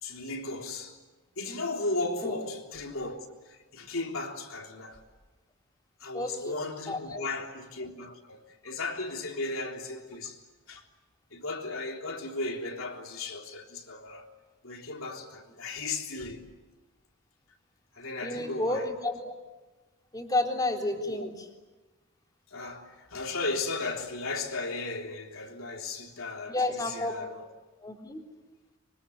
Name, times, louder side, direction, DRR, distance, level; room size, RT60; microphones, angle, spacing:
voice 1, 0.0-1.0 1.4-3.2 3.5-5.0 6.0-10.4 10.7-10.8 11.3-14.3 14.6-16.5 17.9-18.9 20.9-21.3 22.5-27.5, left 3 dB, 75° left, 3.7 m, -36 dB
voice 2, 6.1-6.6 6.9-7.3 18.2-19.3 20.1-21.3 26.5-27.2 27.8-28.2, left 2 dB, 20° left, 3.5 m, -31 dB
25.0 x 25.0 x 9.5 m
head